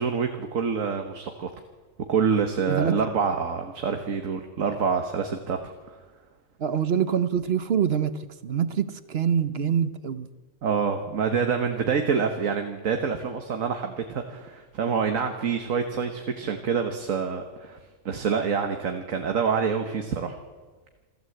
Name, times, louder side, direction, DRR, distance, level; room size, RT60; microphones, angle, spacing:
voice 1, 0.0-1.5 2.1-5.6 5.9-6.0 10.6-17.8 18.0-20.4, right 6 dB, 85° right, 5 dB, 1.6 m, -26 dB
voice 2, 6.6-10.3, right 8 dB, 55° right, 13 dB, 1.1 m, -25 dB
27.0 x 13.0 x 7.9 m, 1.4 s
omnidirectional pair, 1.3 m